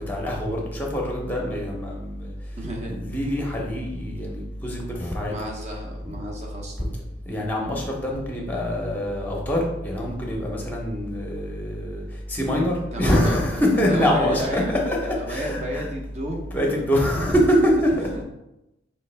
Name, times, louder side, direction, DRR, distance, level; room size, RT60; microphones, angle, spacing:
voice 1, 0.1-2.3 2.9-5.3 7.3-15.9 16.5-18.1, equal, 10° left, -1 dB, 0.8 m, -24 dB
voice 2, 2.6-2.9 5.3-7.1 12.9-16.4 16.7-17.3 18.1-18.2, equal, 35° right, 0 dB, 0.7 m, -32 dB
4.3 x 3.3 x 3.3 m, 0.91 s
head